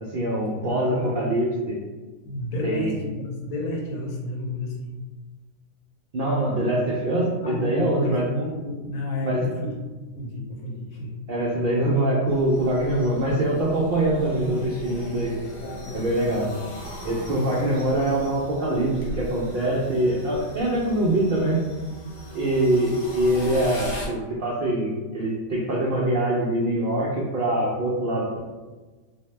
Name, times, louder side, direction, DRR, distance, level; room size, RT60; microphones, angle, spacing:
voice 1, 0.0-1.8 2.6-2.9 6.1-8.2 9.2-9.4 11.3-15.4 15.9-16.5 17.0-21.6 22.3-28.4, right 1 dB, 80° right, -5 dB, 0.4 m, -24 dB
voice 2, 0.6-1.2 2.2-5.0 7.4-9.7 10.1-11.1 15.6-16.1 17.3-17.7, left 1 dB, 75° left, -1 dB, 1.1 m, -31 dB
sound 1, 12.3-24.1, equal, 45° left, 0.6 m, -39 dB
2.6 x 2.1 x 3.1 m, 1.3 s
omnidirectional pair, 1.5 m